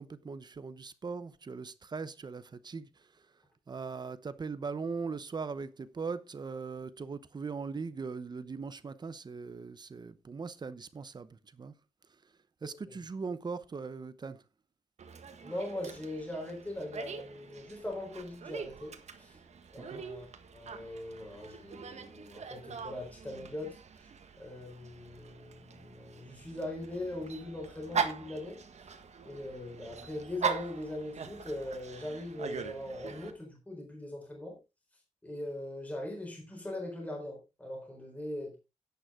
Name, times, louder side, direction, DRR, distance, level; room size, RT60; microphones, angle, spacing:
voice 1, 0.0-3.1 3.7-11.7 12.6-14.4 19.8-20.0, right 4 dB, 35° right, 0.8 m, -40 dB
voice 2, 12.6-13.0 15.4-19.4 19.7-20.3 20.5-24.1 24.4-28.6 29.2-34.6 35.2-38.6, left 1 dB, 10° left, 4.0 m, -40 dB
Dog, 15.0-33.3, right 6 dB, 70° right, 1.6 m, -41 dB
11.0 x 9.4 x 3.7 m
wide cardioid pair, 175°, 12 cm